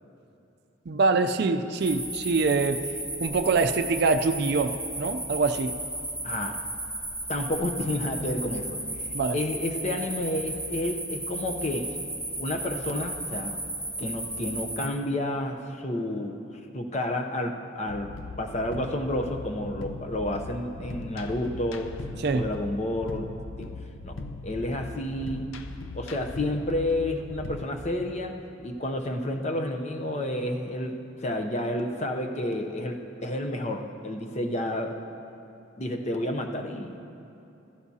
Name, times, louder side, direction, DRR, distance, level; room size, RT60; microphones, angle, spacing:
voice 1, 0.9-2.8 3.2-5.7 9.1-9.4 22.2-22.4, right 4 dB, 55° right, 8 dB, 0.4 m, -24 dB
sound 1, 1.8-14.9, right 1 dB, 5° left, 1.5 m, -34 dB
voice 2, 6.2-6.6 7.3-8.8 9.3-12.0 12.4-13.6 14.0-16.5 16.7-18.1 18.4-21.9 22.3-23.3 23.6-23.7 24.0-24.2 24.4-25.5 25.9-35.0 35.8-37.0, left 1 dB, 35° left, 4 dB, 0.7 m, -30 dB
sound 2, 17.9-27.7, left 3 dB, 85° left, 0.6 m, -39 dB
15.5 x 13.5 x 2.8 m, 2.8 s
head